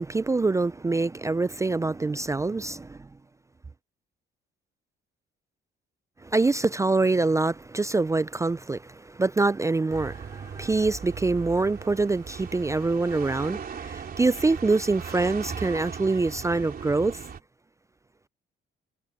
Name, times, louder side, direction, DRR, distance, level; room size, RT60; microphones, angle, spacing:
voice 1, 0.0-3.0 6.2-17.2, right 3 dB, 15° right, 0.3 m, -25 dB
sound 1, 9.9-17.4, right 7 dB, 50° right, 3.8 m, -38 dB
cardioid pair, 90°, 20 cm